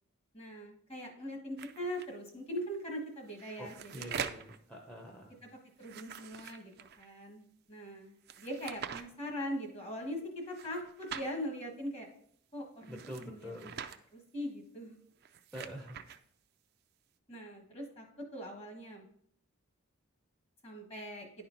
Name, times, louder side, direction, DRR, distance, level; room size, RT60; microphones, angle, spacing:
voice 1, 0.3-4.1 5.8-6.7 7.0-7.4 7.7-12.1 12.5-13.7 14.1-15.0 17.3-19.0 20.6-21.3, equal, 25° left, 2 dB, 1.3 m, -41 dB
sound 1, 1.6-2.1 3.2-4.6 5.8-7.1 8.2-9.0 10.5-11.3 12.8-14.0 15.1-16.2, right 8 dB, 45° right, 0.4 m, -44 dB
voice 2, 3.6-5.4 12.9-13.7 15.5-16.0, equal, 5° left, -1 dB, 0.7 m, -46 dB
10.0 x 4.3 x 3.9 m, 0.65 s
head